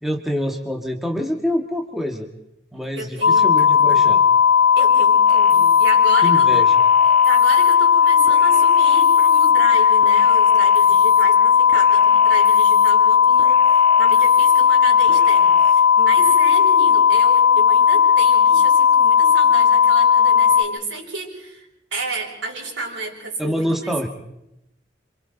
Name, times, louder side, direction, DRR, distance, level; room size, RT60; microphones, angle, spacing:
voice 1, 0.0-2.3 2.7-4.2 6.2-6.7 23.4-24.1, equal, ahead, 1 dB, 1.6 m, -26 dB
voice 2, 3.0-4.1 4.8-6.6 7.2-24.1, right 2 dB, 80° right, -3 dB, 6.8 m, -32 dB
sound 1, 3.2-20.6, left 7 dB, 65° left, 0.9 m, -15 dB
sound 2, 5.3-5.9 6.5-7.7 8.3-9.5 10.0-11.2 11.7-12.9 13.4-14.6 15.1-15.7, right 4 dB, 30° right, 2.1 m, -38 dB
28.0 x 26.5 x 4.0 m, 0.82 s
head